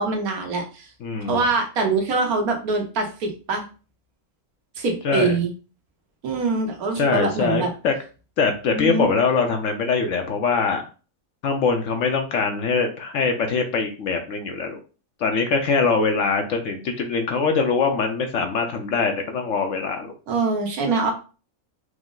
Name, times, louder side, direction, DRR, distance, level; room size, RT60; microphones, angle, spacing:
voice 1, 0.0-0.9 1.2-3.6 4.8-5.5 6.2-7.7 8.7-9.1 20.3-21.1, right 3 dB, 80° right, 2 dB, 1.4 m, -24 dB
voice 2, 1.0-1.4 5.0-5.3 7.0-7.9 8.4-10.8 11.4-14.8 15.2-20.1, left 4 dB, 65° left, 4 dB, 0.9 m, -23 dB
4.9 x 2.0 x 3.7 m, 0.35 s
omnidirectional pair, 1.5 m